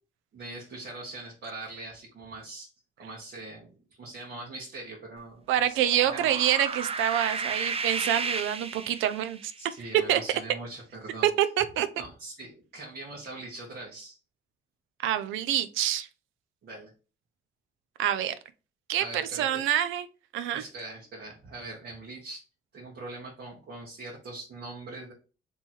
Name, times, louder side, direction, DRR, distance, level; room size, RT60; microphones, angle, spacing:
voice 1, 0.3-2.7 3.0-6.4 9.6-11.3 12.0-14.2 16.6-16.9 19.0-19.7 20.5-22.4 22.7-25.1, right 2 dB, 60° right, -4 dB, 1.4 m, -42 dB
voice 2, 5.5-9.5 10.1-10.2 11.2-11.9 15.0-16.1 18.0-18.3 18.9-20.0 20.3-20.6, right 11 dB, 90° right, 12 dB, 0.5 m, -26 dB
sound 1, 5.7-9.5, right 4 dB, 30° right, 0.5 m, -33 dB
3.5 x 3.0 x 4.3 m, 0.34 s
cardioid pair, 90°, 20 cm